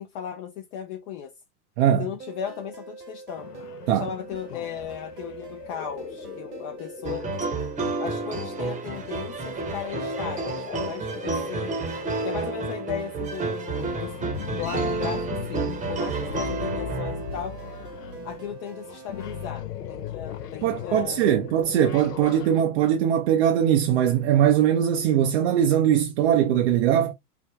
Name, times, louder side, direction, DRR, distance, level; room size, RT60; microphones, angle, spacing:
voice 1, 0.0-1.3 2.0-3.5 3.9-7.3 8.0-11.7 12.2-14.1 14.6-15.6 15.9-17.5 18.2-21.3, left 9 dB, 30° left, 0.5 m, -36 dB
voice 2, 1.8-2.1 3.9-4.1 20.6-27.1, right 10 dB, 45° right, 0.5 m, -21 dB
sound 1, 2.2-19.5, right 5 dB, 75° right, 1.4 m, -43 dB
sound 2, 3.4-22.6, left 8 dB, 85° left, 0.6 m, -39 dB
sound 3, 7.0-17.5, right 3 dB, 15° right, 0.9 m, -30 dB
3.4 x 2.1 x 3.3 m
figure-of-eight pair, 100°, 46 cm